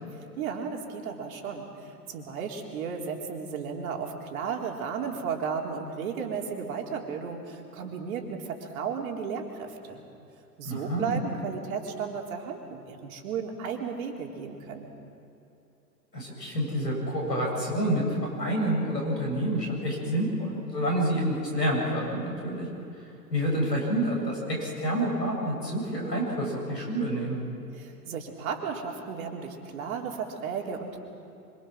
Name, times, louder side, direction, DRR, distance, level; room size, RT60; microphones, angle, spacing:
voice 1, 0.1-10.0 10.6-14.9 27.7-31.0, right 6 dB, 55° right, 1 dB, 3.6 m, -34 dB
voice 2, 10.6-11.2 16.1-18.0 18.4-22.7 23.0-27.4, right 1 dB, 90° left, -1 dB, 7.9 m, -28 dB
25.5 x 24.5 x 6.3 m, 2.9 s
figure-of-eight pair, 105°, 49 cm